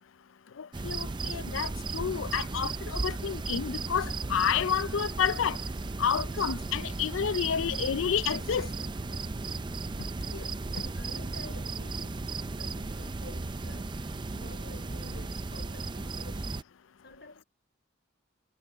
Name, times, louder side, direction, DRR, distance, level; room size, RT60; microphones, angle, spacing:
voice 1, 0.6-5.6 6.0-8.7, left 7 dB, 80° left, 0.5 m, -30 dB
sound 1, 0.7-16.6, right 3 dB, 25° right, 0.4 m, -35 dB
voice 2, 10.2-14.0 14.3-16.6 17.0-17.4, left 2 dB, 60° left, 4.8 m, -50 dB
head